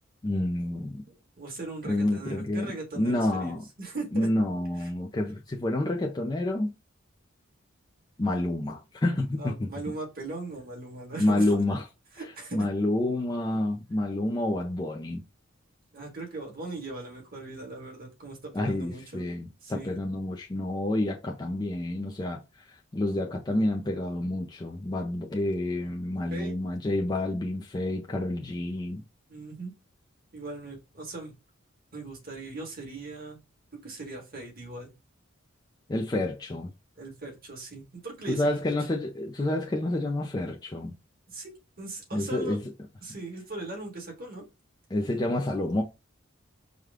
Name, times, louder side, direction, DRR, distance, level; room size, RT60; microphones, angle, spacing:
voice 1, 0.2-1.0 1.8-3.6 4.1-6.7 8.2-9.7 11.2-11.8 12.5-15.2 18.5-22.4 22.9-29.0 35.9-36.7 38.3-40.9 42.1-42.6 44.9-45.8, left 1 dB, 20° left, 0.5 m, -28 dB
voice 2, 1.1-4.3 9.4-11.6 12.2-12.7 15.9-19.3 19.6-20.0 26.3-26.5 29.3-29.7 30.3-31.3 31.9-33.4 33.8-34.9 37.0-38.5 41.3-41.5 41.8-42.6 43.0-44.4, right 2 dB, 50° right, 1.8 m, -39 dB
4.9 x 2.2 x 3.6 m
head